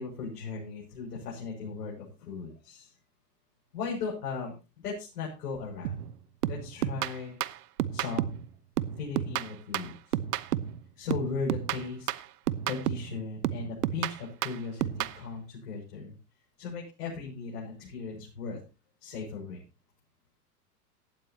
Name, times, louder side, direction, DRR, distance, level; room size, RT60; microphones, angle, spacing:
voice 1, 0.0-2.9 3.7-4.5 4.8-6.0 6.5-7.4 7.9-8.2 9.0-9.9 11.0-12.1 12.7-14.9 15.1-16.1 16.6-18.6 19.0-19.6, left 5 dB, 70° left, -2 dB, 6.4 m, -37 dB
sound 1, 5.8-6.1 6.4-8.5 8.8-10.8 11.1-13.1 13.4-15.2, right 12 dB, 70° right, 1.0 m, -31 dB
17.5 x 12.5 x 2.8 m, 0.30 s
hypercardioid pair, 105°, 48 cm